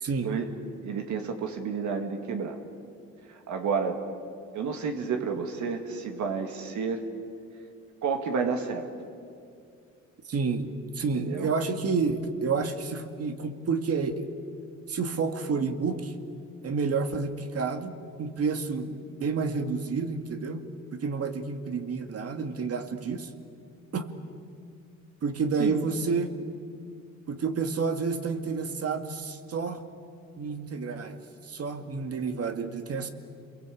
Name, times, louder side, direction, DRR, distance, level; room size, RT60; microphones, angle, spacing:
voice 1, 0.0-0.3 10.3-14.3 14.9-16.1 16.6-20.6 20.9-23.3 23.9-24.1 25.2-26.3 27.3-29.8 30.4-31.2 31.4-33.1, right 4 dB, 50° right, 7 dB, 2.1 m, -29 dB
voice 2, 0.8-2.6 3.3-4.0 4.5-7.0 8.0-8.9 11.2-11.5 25.6-25.8, right 5 dB, 70° right, 5 dB, 2.3 m, -30 dB
28.5 x 22.5 x 8.5 m, 2.4 s
cardioid pair, 90°, 30 cm